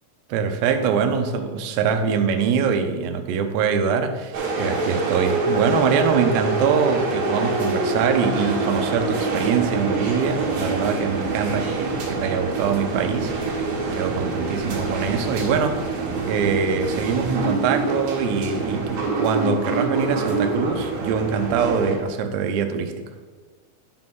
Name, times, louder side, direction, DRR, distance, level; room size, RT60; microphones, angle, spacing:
voice 1, 0.3-13.5 14.0-23.0, right 6 dB, 90° right, 6 dB, 2.9 m, -23 dB
sound 1, 4.3-22.0, right 3 dB, 60° right, 2.9 m, -25 dB
11.0 x 3.7 x 6.1 m, 1.5 s
omnidirectional pair, 4.8 m